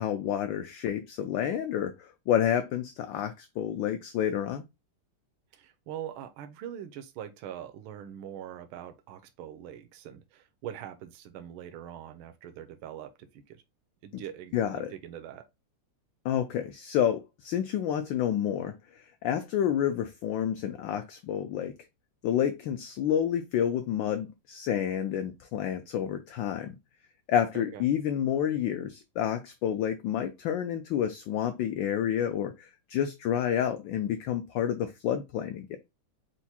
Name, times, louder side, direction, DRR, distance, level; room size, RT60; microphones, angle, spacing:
voice 1, 0.0-4.6 14.1-14.2 14.5-14.9 16.2-21.7 22.2-26.8 27.3-35.8, left 9 dB, 75° left, 1.1 m, -29 dB
voice 2, 5.5-13.6 14.0-15.5 27.5-27.8, right 10 dB, 75° right, 1.4 m, -43 dB
4.6 x 2.1 x 4.2 m
omnidirectional pair, 2.4 m